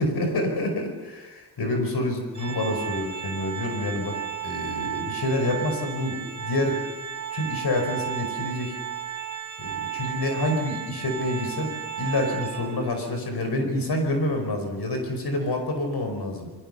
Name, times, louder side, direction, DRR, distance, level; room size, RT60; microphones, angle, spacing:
voice 1, 0.0-4.2 4.4-6.8 7.3-8.8 9.6-16.5, left 1 dB, 70° left, 4 dB, 4.9 m, -27 dB
Organ, 2.3-13.0, right 10 dB, 45° right, 1.3 m, -34 dB
28.0 x 23.0 x 6.7 m, 1.2 s
wide cardioid pair, 160°, 41 cm